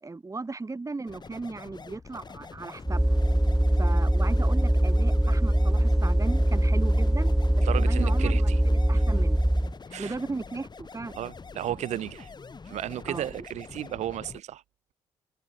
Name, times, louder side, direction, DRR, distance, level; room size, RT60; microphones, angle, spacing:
voice 1, 0.0-3.0 3.8-8.5 8.9-9.4 10.0-11.2 13.1-13.3, right 3 dB, 25° right, 2.5 m, -36 dB
sound 1, 1.1-14.4, left 4 dB, 35° left, 2.7 m, -45 dB
sound 2, 2.9-9.7, right 1 dB, 5° right, 1.0 m, -22 dB
voice 2, 7.6-8.6 8.9-9.0 9.9-10.2 11.1-12.3 12.6-14.6, right 12 dB, 70° right, 2.0 m, -34 dB
hypercardioid pair, 45°, 12 cm